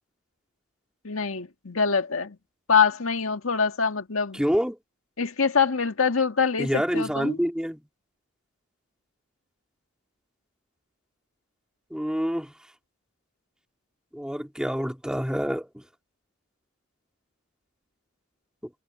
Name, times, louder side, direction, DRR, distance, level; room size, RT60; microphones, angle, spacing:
voice 1, 1.0-2.4 2.7-4.4 5.2-7.4, left 5 dB, 85° left, 1.8 m, -24 dB
voice 2, 4.3-4.8 6.6-7.8 11.9-12.5 14.1-15.7, equal, 5° right, 2.1 m, -27 dB
head